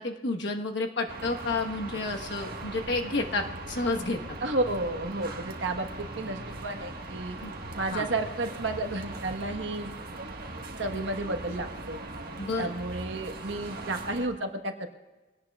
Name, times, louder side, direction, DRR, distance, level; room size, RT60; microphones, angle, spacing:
voice 1, 0.0-4.2 7.4-7.5 7.9-8.1 12.4-12.7, left 3 dB, 60° left, 3 dB, 1.2 m, -30 dB
sound 1, 1.1-14.3, right 2 dB, 50° right, 1.5 m, -40 dB
voice 2, 4.4-7.3 7.8-9.9 10.8-12.0 12.6-14.9, right 2 dB, 65° right, 5 dB, 1.3 m, -32 dB
23.5 x 17.5 x 2.4 m, 1.2 s
head